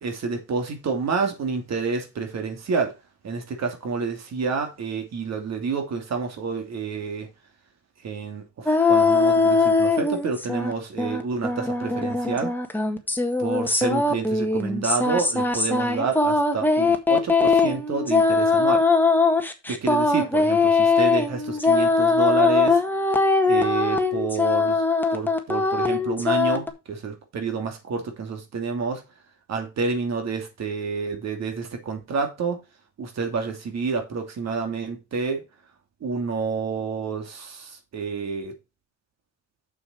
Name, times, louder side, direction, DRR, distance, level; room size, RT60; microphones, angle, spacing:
voice 1, 0.0-2.9 3.2-7.3 8.0-12.6 13.4-18.9 19.7-22.8 23.4-24.8 25.1-29.0 29.5-32.6 33.0-35.4 36.0-38.5, right 5 dB, 60° right, 2.9 m, -29 dB
sound 1, 8.7-10.7 11.0-26.7, left 3 dB, 5° left, 1.7 m, -21 dB
7.0 x 6.8 x 4.5 m
cardioid pair, 90°, 30 cm